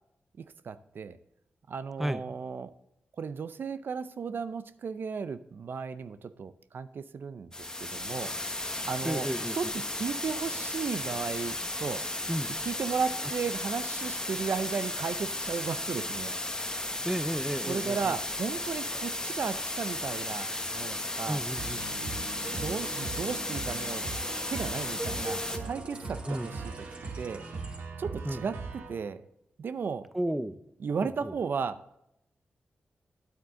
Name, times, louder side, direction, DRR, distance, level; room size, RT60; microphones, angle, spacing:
voice 1, 0.4-1.2 1.7-2.7 3.2-7.5 7.8-8.4 8.8-9.3 9.6-12.1 12.6-16.3 17.7-21.4 22.5-24.0 24.5-26.7 27.2-27.5 28.0-29.2 29.6-30.1 30.8-32.0, right 5 dB, 65° right, 13 dB, 0.5 m, -35 dB
sound 1, 7.5-25.6, left 1 dB, 15° left, 1.2 m, -34 dB
voice 2, 9.0-9.6 12.3-12.5 17.0-18.2 21.3-21.8 26.3-26.5 28.2-28.4 30.1-30.6 31.0-31.4, right 1 dB, 5° right, 12 dB, 0.6 m, -32 dB
sound 2, 21.6-28.9, right 4 dB, 80° right, 2.0 m, -40 dB
sound 3, 22.4-27.8, right 1 dB, 30° right, 2.4 m, -44 dB
9.6 x 8.2 x 3.7 m, 0.82 s
cardioid pair, 75°, 4 cm